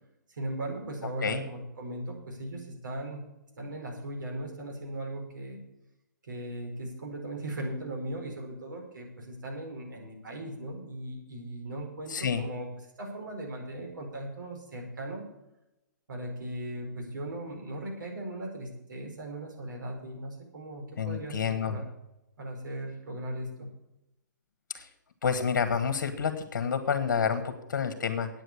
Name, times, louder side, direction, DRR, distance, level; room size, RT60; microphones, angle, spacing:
voice 1, 0.3-3.3 3.6-5.6 6.2-12.7 13.0-15.3 16.1-21.8 22.4-23.7, right 1 dB, 80° right, 1 dB, 4.7 m, -38 dB
voice 2, 12.1-12.4 21.0-21.8 24.7-24.9 25.2-28.3, left 6 dB, 65° left, 7 dB, 1.5 m, -29 dB
8.8 x 7.9 x 8.6 m, 0.91 s
hypercardioid pair, 135°, 10 cm